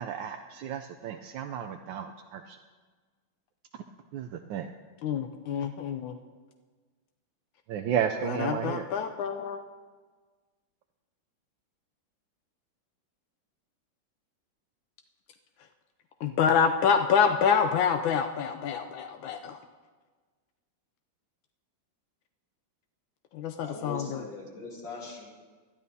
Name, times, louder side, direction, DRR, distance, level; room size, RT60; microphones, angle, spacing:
voice 1, 0.0-2.6 4.1-4.7 7.7-8.8, right 9 dB, 80° right, 6 dB, 1.3 m, -33 dB
voice 2, 5.0-6.1 8.2-9.6 16.2-19.6 23.3-24.2, left 7 dB, 85° left, 5 dB, 1.4 m, -27 dB
voice 3, 23.6-25.2, left 3 dB, 65° left, -4 dB, 3.5 m, -40 dB
21.0 x 12.0 x 2.7 m, 1.4 s
omnidirectional pair, 2.1 m